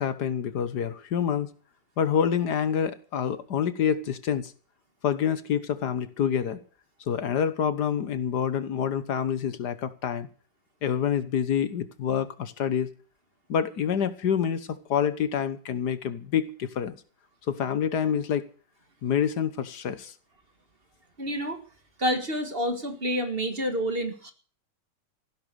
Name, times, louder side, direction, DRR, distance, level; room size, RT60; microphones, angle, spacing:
voice 1, 0.0-1.5 2.0-4.5 5.0-6.6 7.1-10.3 10.8-12.9 13.5-16.9 17.5-18.4 19.0-20.1, left 8 dB, 70° left, 13 dB, 1.7 m, -27 dB
voice 2, 21.2-21.6 22.0-24.3, equal, 35° right, 7 dB, 1.9 m, -28 dB
15.5 x 11.5 x 6.8 m, 0.40 s
omnidirectional pair, 1.8 m